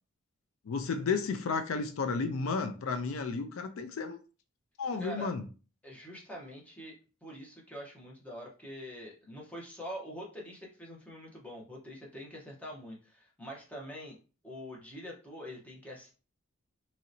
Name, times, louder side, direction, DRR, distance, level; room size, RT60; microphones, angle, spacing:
voice 1, 0.7-4.2 4.8-5.4, left 4 dB, 70° left, 0.4 m, -32 dB
voice 2, 5.0-5.3 5.8-6.9 7.2-14.1 14.4-16.1, equal, 5° left, 0.8 m, -44 dB
3.1 x 2.8 x 2.6 m
head